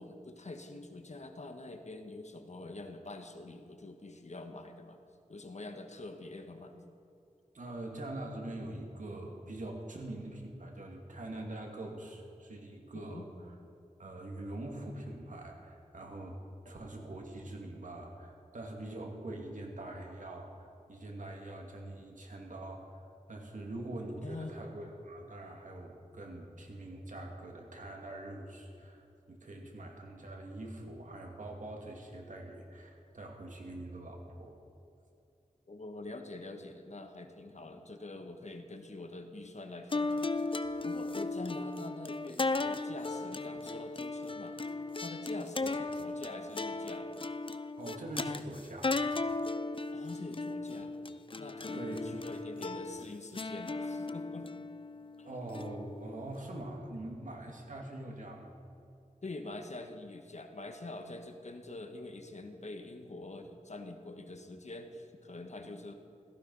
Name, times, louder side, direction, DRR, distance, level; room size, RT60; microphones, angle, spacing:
voice 1, 0.0-5.0 5.3-6.7 12.9-13.3 24.2-24.5 35.7-40.6 40.8-44.6 45.0-47.1 49.9-50.9 51.4-54.5 55.2-55.3 59.2-66.0, left 2 dB, 60° left, 6 dB, 1.5 m, -45 dB
voice 2, 7.5-13.5 14.0-16.4 16.6-23.0 23.3-34.6 45.6-45.7 47.8-49.3 51.7-52.3 55.2-58.5, right 1 dB, 70° right, 1 dB, 2.3 m, -44 dB
sound 1, 39.9-56.4, left 3 dB, 40° left, 0.6 m, -36 dB
17.0 x 14.5 x 5.5 m, 2.6 s
wide cardioid pair, 85°, 13 cm